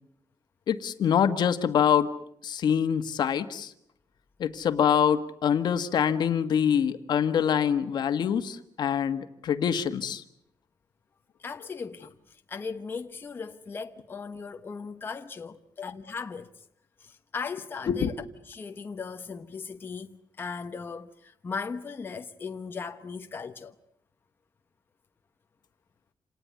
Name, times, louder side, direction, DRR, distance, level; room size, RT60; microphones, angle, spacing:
voice 1, 0.7-2.1 2.4-3.7 4.4-10.2 17.9-18.1, left 8 dB, 65° left, 1.6 m, -25 dB
voice 2, 11.4-16.6 17.0-23.7, left 5 dB, 30° left, 1.1 m, -38 dB
27.5 x 19.0 x 9.5 m
wide cardioid pair, 165°, 8 cm